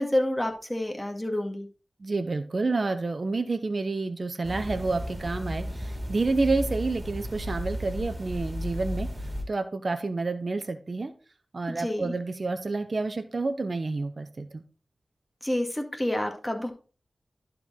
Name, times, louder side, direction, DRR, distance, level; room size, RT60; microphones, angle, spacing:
voice 1, 0.0-1.7 11.7-12.1 15.4-16.7, left 1 dB, 15° left, 3 dB, 2.0 m, -28 dB
voice 2, 2.0-9.1 9.5-11.1 11.5-14.6, right 3 dB, 60° right, 8 dB, 0.9 m, -29 dB
sound 1, 4.4-9.4, equal, 25° right, 2.4 m, -34 dB
11.0 x 4.6 x 3.7 m, 0.36 s
cardioid pair, 45°, 0 cm